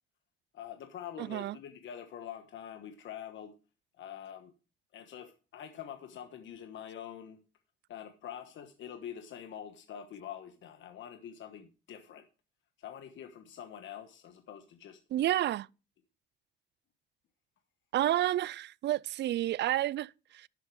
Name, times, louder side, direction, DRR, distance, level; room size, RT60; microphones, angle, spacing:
voice 1, 0.5-3.5 4.0-4.5 4.9-7.4 7.9-12.2 12.8-15.0, left 9 dB, 75° left, 1.3 m, -45 dB
voice 2, 1.2-1.5 15.1-15.7 17.9-20.5, right 14 dB, 60° right, 0.4 m, -30 dB
11.0 x 7.7 x 4.8 m
cardioid pair, 90°, 20 cm